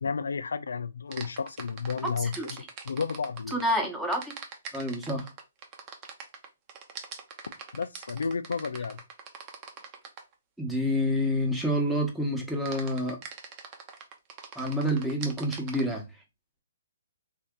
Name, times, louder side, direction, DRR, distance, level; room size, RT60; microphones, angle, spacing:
voice 1, 0.0-3.6 7.7-9.0, left 5 dB, 80° left, 0.4 m, -32 dB
sound 1, 1.1-3.7 4.1-10.3 12.7-15.8, right 6 dB, 30° right, 0.8 m, -42 dB
voice 2, 3.5-4.3 4.7-5.3 10.6-13.2 14.5-16.0, equal, 5° right, 1.1 m, -28 dB
3.4 x 2.7 x 3.7 m
hypercardioid pair, 140°, 0 cm